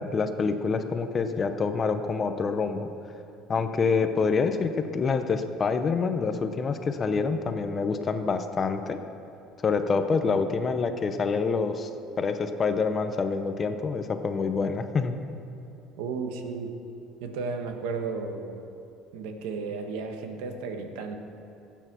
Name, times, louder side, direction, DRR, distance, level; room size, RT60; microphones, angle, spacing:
voice 1, 0.0-2.9 3.5-9.0 9.6-11.9 12.2-15.1, left 4 dB, 20° left, 8 dB, 0.6 m, -26 dB
voice 2, 16.0-16.7 17.2-18.6 19.1-21.2, right 4 dB, 85° right, 5 dB, 1.4 m, -33 dB
17.0 x 9.0 x 6.1 m, 2.7 s
cardioid pair, 180°, 0 cm